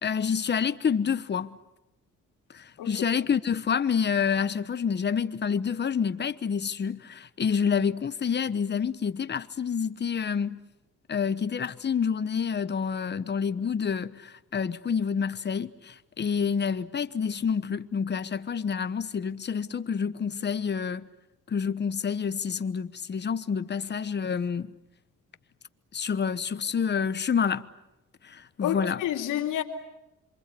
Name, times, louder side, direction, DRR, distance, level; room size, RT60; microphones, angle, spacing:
voice 1, 0.0-1.6 2.5-10.6 11.1-21.1 21.5-24.7 25.9-27.7 28.2-29.0, left 6 dB, 35° left, 1.1 m, -28 dB
voice 2, 28.6-29.6, left 11 dB, 90° left, 2.7 m, -29 dB
27.0 x 24.0 x 8.4 m
cardioid pair, 90°, 30 cm